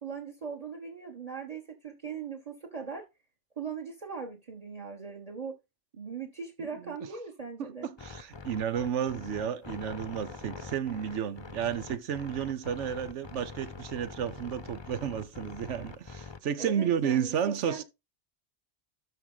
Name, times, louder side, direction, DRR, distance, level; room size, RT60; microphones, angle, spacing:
voice 1, 0.0-3.0 3.6-5.5 5.9-7.9 16.6-17.8, right 5 dB, 35° right, 1.5 m, -39 dB
voice 2, 6.6-6.9 7.6-17.8, right 8 dB, 85° right, 1.1 m, -32 dB
sound 1, 8.0-16.4, left 4 dB, 25° left, 0.7 m, -44 dB
12.5 x 4.5 x 3.9 m
omnidirectional pair, 1.2 m